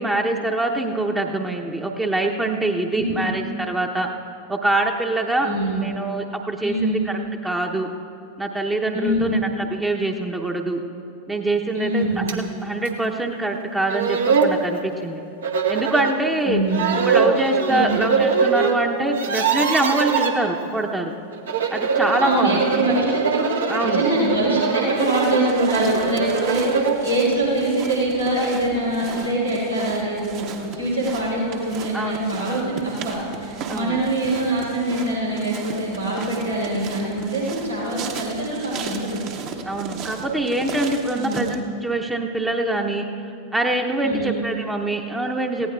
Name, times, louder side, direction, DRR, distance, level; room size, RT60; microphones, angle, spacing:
voice 1, 0.0-4.1 4.5-5.5 5.8-7.9 8.4-9.4 9.7-10.8 11.3-15.2 15.7-16.6 17.1-21.1 21.7-22.6 23.7-24.1 31.9-32.2 33.7-34.0 39.6-43.1 43.5-45.7, right 2 dB, 10° right, 2 dB, 0.8 m, -24 dB
voice 2, 2.9-3.3 5.4-5.8 6.6-7.0 8.9-9.3 11.7-12.3 16.4-16.8 17.7-18.0 22.2-39.2 41.1-41.5 44.0-44.4, right 1 dB, 85° right, -7 dB, 3.7 m, -24 dB
sound 1, 12.3-12.4 12.9-13.0 13.6-13.7 13.9-14.6 15.4-16.2 16.7-18.7 19.0-20.3 21.3-27.0, right 5 dB, 65° right, 1.0 m, -22 dB
sound 2, 25.0-41.6, right 6 dB, 40° right, 1.1 m, -36 dB
19.0 x 16.0 x 2.4 m, 2.6 s
figure-of-eight pair, 90°, 0 cm